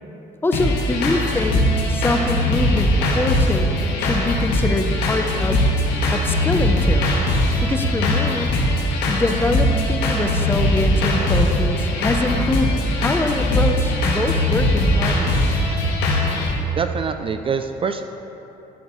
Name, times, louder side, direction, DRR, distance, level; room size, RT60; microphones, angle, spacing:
voice 1, 0.4-3.7 4.0-5.7 6.1-7.1 7.6-8.5 9.1-15.4, left 2 dB, 15° left, 6 dB, 0.7 m, -24 dB
sound 1, 0.5-16.5, left 1 dB, 85° left, 1.5 m, -20 dB
voice 2, 16.8-18.0, right 6 dB, 30° right, 8 dB, 0.4 m, -24 dB
12.0 x 7.9 x 3.1 m, 3.0 s
cardioid pair, 110°, 17 cm